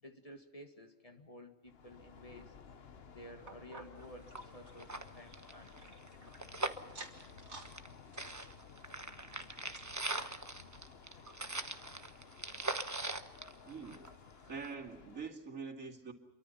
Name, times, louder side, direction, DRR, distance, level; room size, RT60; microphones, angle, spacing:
voice 1, 0.0-2.6 3.1-5.7, equal, 25° left, 5 dB, 2.1 m, -53 dB
sound 1, 1.7-15.3, left 6 dB, 50° left, 1.3 m, -56 dB
sound 2, 3.5-6.4 6.8-7.7 8.0-10.4 10.9-11.0 11.3-11.4 12.0-12.1, right 2 dB, 60° right, 2.9 m, -54 dB
sound 3, 4.0-4.1 4.3-4.4 4.7-7.9 8.2-14.3 14.6-14.7, right 2 dB, 15° right, 1.0 m, -41 dB
voice 2, 13.6-14.0 14.5-16.1, right 5 dB, 85° right, 1 dB, 2.9 m, -44 dB
27.5 x 23.5 x 5.7 m, 1.1 s
omnidirectional pair, 1.3 m